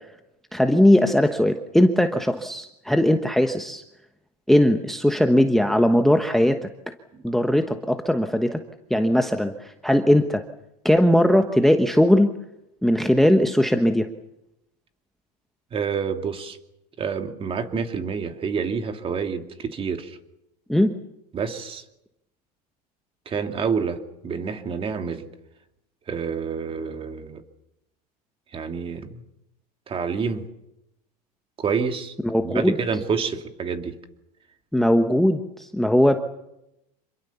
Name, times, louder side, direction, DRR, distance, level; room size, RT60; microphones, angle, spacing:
voice 1, 0.5-3.8 4.5-6.7 7.2-8.6 8.9-10.4 10.8-12.3 12.8-14.1 20.7-20.9 32.2-32.8 34.7-36.2, left 1 dB, ahead, 7 dB, 1.2 m, -19 dB
voice 2, 15.7-16.6 17.0-20.2 21.3-21.8 23.3-25.3 26.1-27.4 28.5-29.2 29.9-30.4 31.6-32.1 32.4-33.9, right 6 dB, 25° right, 6 dB, 2.7 m, -28 dB
27.0 x 22.5 x 7.1 m, 0.86 s
supercardioid pair, 130°, 21 cm